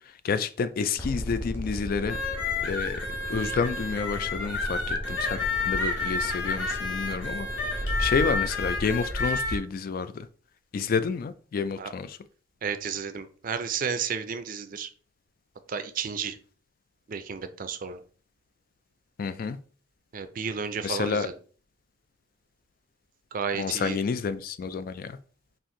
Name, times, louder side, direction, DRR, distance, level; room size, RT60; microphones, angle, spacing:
voice 1, 0.2-2.2 2.6-3.0 3.3-5.4 5.6-10.3 10.7-12.2 19.2-19.6 20.8-21.3 23.5-25.2, left 5 dB, 50° left, 0.3 m, -29 dB
sound 1, 1.0-9.0, equal, 10° left, 1.0 m, -38 dB
sound 2, 2.1-9.6, left 3 dB, 85° left, 1.2 m, -30 dB
voice 2, 12.6-14.9 15.7-16.4 17.1-18.0 20.1-21.3 23.3-24.0, right 6 dB, 50° right, 0.4 m, -32 dB
4.2 x 2.6 x 3.7 m
head